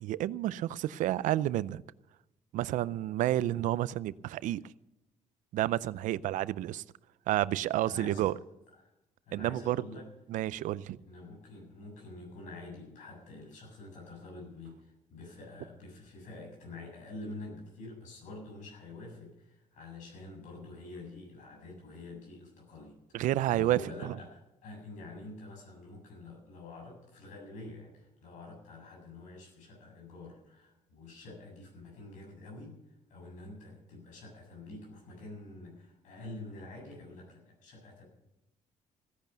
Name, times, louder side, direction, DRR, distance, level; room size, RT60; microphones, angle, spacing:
voice 1, 0.0-1.8 2.5-4.6 5.5-6.8 7.3-8.4 9.3-9.8 10.3-11.0 23.1-24.2, right 14 dB, 85° right, 0.5 m, -30 dB
voice 2, 7.8-8.3 8.7-8.9 9.3-10.1 11.0-32.8 33.1-38.0, left 2 dB, 80° left, 7.4 m, -47 dB
16.5 x 10.5 x 6.8 m
cardioid pair, 140°, 13 cm